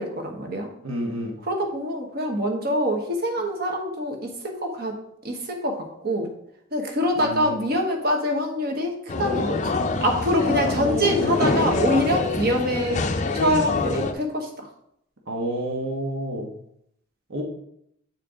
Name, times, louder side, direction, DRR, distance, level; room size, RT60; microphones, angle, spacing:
voice 1, 0.0-0.7 1.5-6.3 6.7-9.7 10.0-13.0 13.3-14.5, equal, 50° right, 3 dB, 1.2 m, -25 dB
voice 2, 0.8-1.3 7.2-7.6 10.8-11.4 15.3-16.5 17.3-17.4, equal, 80° right, 0 dB, 1.3 m, -29 dB
sound 1, 9.1-14.1, left 3 dB, 35° left, 0.5 m, -25 dB
8.3 x 4.5 x 3.8 m, 0.74 s
head